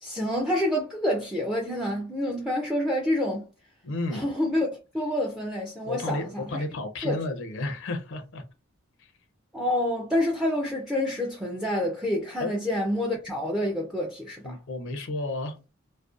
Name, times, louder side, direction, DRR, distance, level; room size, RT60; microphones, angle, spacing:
voice 1, 0.0-3.5 4.1-4.7 4.9-6.6 7.0-7.2 9.5-14.5, left 1 dB, 5° right, 0.3 m, -28 dB
voice 2, 3.8-4.3 5.8-8.4 9.0-9.1 12.4-12.5 14.4-15.6, left 2 dB, 65° left, 0.5 m, -32 dB
2.5 x 2.1 x 2.4 m
head